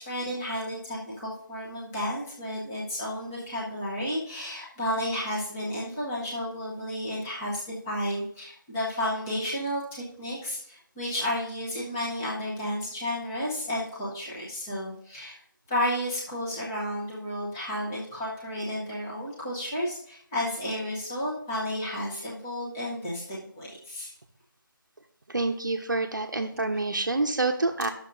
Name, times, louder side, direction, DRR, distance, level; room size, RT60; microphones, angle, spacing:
voice 1, 0.0-15.4 15.7-24.1 26.7-26.8, left 1 dB, 5° left, -6 dB, 0.9 m, -32 dB
voice 2, 25.3-27.9, right 2 dB, 60° right, 5 dB, 0.9 m, -27 dB
11.5 x 6.7 x 2.6 m, 0.64 s
figure-of-eight pair, 170°, 12 cm